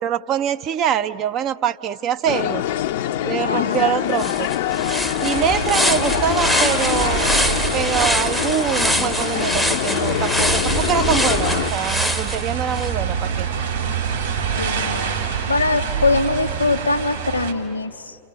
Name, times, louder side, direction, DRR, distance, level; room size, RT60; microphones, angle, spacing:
voice 1, 0.0-2.6 3.2-4.5 5.2-7.3 7.7-13.5, right 9 dB, 35° right, 10 dB, 0.6 m, -24 dB
sound 1, 2.3-11.7, left 12 dB, 50° left, 0.6 m, -24 dB
voice 2, 3.4-4.1 14.6-15.2 15.5-18.2, left 3 dB, 80° left, 11 dB, 1.1 m, -22 dB
sound 2, 3.7-3.8 4.1-12.9, equal, ahead, 0.8 m, -24 dB
sound 3, 5.3-17.5, right 7 dB, 70° right, 3.4 m, -26 dB
29.5 x 28.5 x 6.8 m, 2.5 s
figure-of-eight pair, 90°, 0 cm